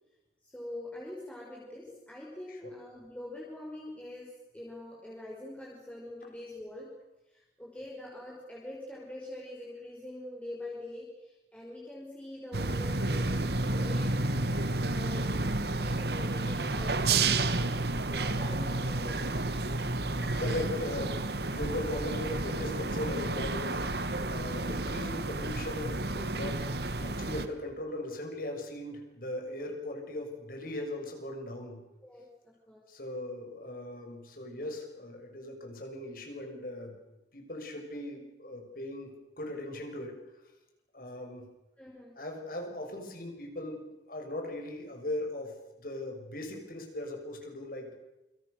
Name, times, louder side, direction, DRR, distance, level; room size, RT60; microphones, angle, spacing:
voice 1, 0.4-6.9 7.3-14.2 14.6-15.3 15.8-17.7 18.1-19.4 29.5-29.6 32.0-32.8 41.8-42.2, left 1 dB, 5° left, -4 dB, 5.4 m, -44 dB
sound 1, 12.5-27.5, right 2 dB, 65° right, 1.9 m, -31 dB
voice 2, 20.4-24.0 24.2-26.6 27.0-31.8 32.9-36.9 37.3-40.2 40.9-41.5 42.2-43.8 44.1-47.9, left 1 dB, 50° left, 3 dB, 6.3 m, -39 dB
28.5 x 26.0 x 6.7 m, 0.99 s
head